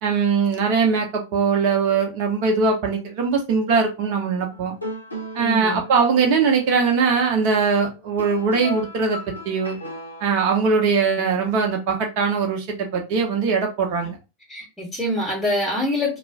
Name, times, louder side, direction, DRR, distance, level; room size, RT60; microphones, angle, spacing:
voice 1, 0.0-4.7 5.3-9.2 9.4-9.8 10.2-14.2, right 5 dB, 45° right, 0.7 m, -21 dB
sound 1, 4.5-10.5, left 1 dB, 85° left, 0.6 m, -37 dB
voice 2, 5.4-5.8 14.5-16.2, left 1 dB, 5° left, 1.0 m, -25 dB
2.3 x 2.0 x 3.5 m
figure-of-eight pair, 90°, 0 cm